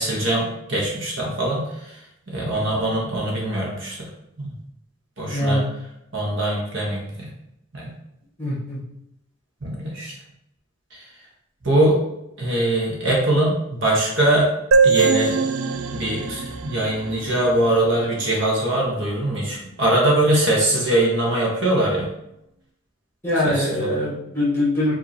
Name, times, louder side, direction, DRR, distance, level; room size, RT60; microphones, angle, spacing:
voice 1, 0.0-1.7 2.3-4.0 5.2-5.6 6.1-7.3 7.7-7.9 9.6-10.1 11.6-12.0 12.4-14.5 14.8-15.4 15.9-22.1 23.4-23.5, right 1 dB, 60° right, -3 dB, 1.1 m, -22 dB
voice 2, 2.5-2.8 5.3-5.6 8.4-8.8 23.2-24.9, left 1 dB, 10° left, -8 dB, 1.5 m, -23 dB
sound 1, 14.7-18.2, right 4 dB, 80° right, 0.4 m, -22 dB
5.2 x 2.8 x 2.8 m, 0.82 s
head